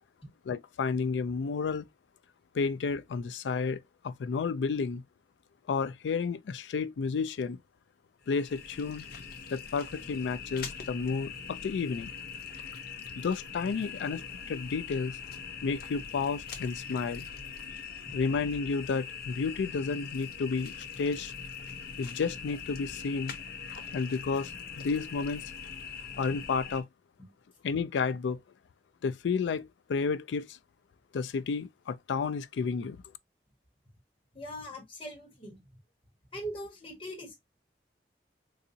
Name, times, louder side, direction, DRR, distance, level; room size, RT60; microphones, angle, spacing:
voice 1, 0.5-1.9 2.5-5.0 5.7-7.6 8.3-9.0 9.5-12.1 13.2-15.2 15.6-17.3 18.1-21.3 22.0-23.4 23.9-25.4 26.2-26.9 27.6-28.4 29.0-30.6 31.1-33.0, left 5 dB, 85° left, 0.4 m, -31 dB
sound 1, 8.2-26.8, left 6 dB, 55° left, 0.7 m, -42 dB
voice 2, 34.3-35.6 36.3-37.4, equal, 30° left, 1.4 m, -41 dB
3.9 x 2.6 x 2.7 m
head